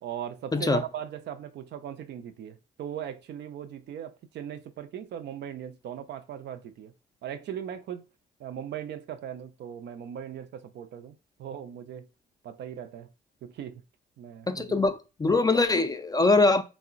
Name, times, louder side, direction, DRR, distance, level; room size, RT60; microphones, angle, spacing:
voice 1, 0.0-6.9 7.2-8.0 8.4-12.1 12.4-13.1 13.4-13.8 14.2-14.8, right 9 dB, 55° right, 0.4 m, -39 dB
voice 2, 14.5-16.6, left 3 dB, 20° left, 0.4 m, -23 dB
3.6 x 2.0 x 2.4 m
supercardioid pair, 60°, 21 cm